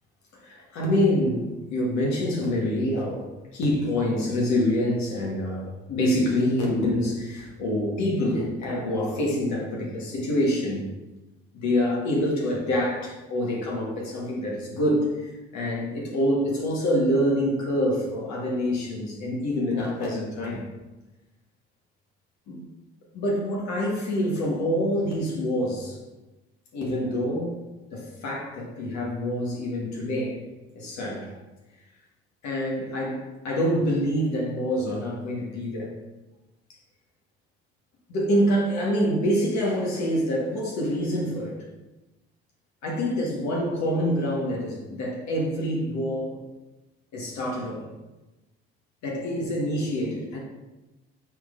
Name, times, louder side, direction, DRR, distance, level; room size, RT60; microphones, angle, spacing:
voice 1, 0.3-10.9 11.5-20.6 22.5-22.6 23.1-26.0 26.7-27.6 27.9-30.4 30.7-31.3 32.4-35.9 38.1-41.6 42.8-46.4 47.1-47.9 49.0-50.4, equal, 65° left, -3 dB, 1.3 m, -26 dB
5.9 x 3.4 x 2.5 m, 1.1 s
hypercardioid pair, 65°, 30 cm